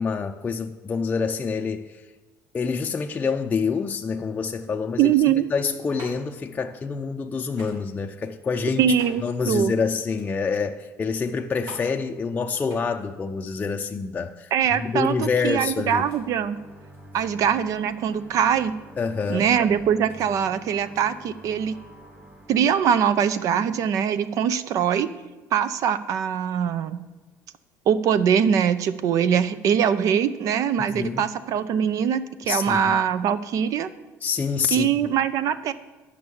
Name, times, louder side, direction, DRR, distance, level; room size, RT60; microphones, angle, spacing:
voice 1, 0.0-2.0 2.5-5.1 5.5-8.9 9.2-16.0 19.0-19.5 30.8-31.3 32.5-33.0 34.2-34.9, left 5 dB, 25° left, 3 dB, 0.5 m, -27 dB
voice 2, 5.0-5.4 8.8-9.2 9.5-9.7 14.5-16.6 17.1-18.7 19.3-21.7 22.5-25.1 25.5-27.0 27.9-33.9 34.7-35.7, right 8 dB, 60° right, 14 dB, 0.6 m, -22 dB
sound 1, 6.0-22.0, right 1 dB, 85° right, 3.6 m, -50 dB
sound 2, 15.5-24.5, right 1 dB, 25° right, 1.7 m, -47 dB
9.9 x 6.2 x 7.0 m, 1.3 s
cardioid pair, 120°, 6 cm